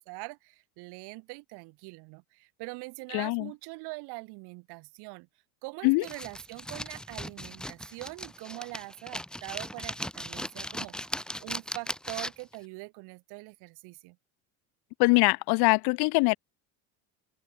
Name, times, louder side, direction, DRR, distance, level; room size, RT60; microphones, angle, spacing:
voice 1, 0.0-5.3 5.6-11.0 11.4-14.2, right 26 dB, 70° right, 7.5 m, -43 dB
voice 2, 3.1-3.5 5.8-6.0 15.0-16.4, left 28 dB, 65° left, 1.0 m, -23 dB
sound 1, 6.0-12.6, equal, ahead, 6.7 m, -38 dB
open air
cardioid pair, 130°, 41 cm